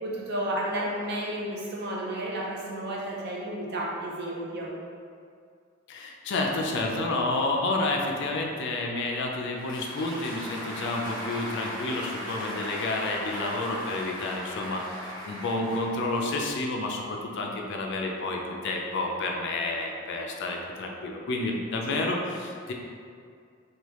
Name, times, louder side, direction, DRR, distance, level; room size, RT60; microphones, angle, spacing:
voice 1, 0.0-4.7 21.9-22.1, right 1 dB, 55° right, -4 dB, 0.6 m, -32 dB
voice 2, 5.9-22.7, left 2 dB, 60° left, 1 dB, 0.4 m, -30 dB
Applause, 9.4-16.5, equal, 25° left, 1.1 m, -38 dB
3.2 x 2.3 x 3.0 m, 2.3 s
head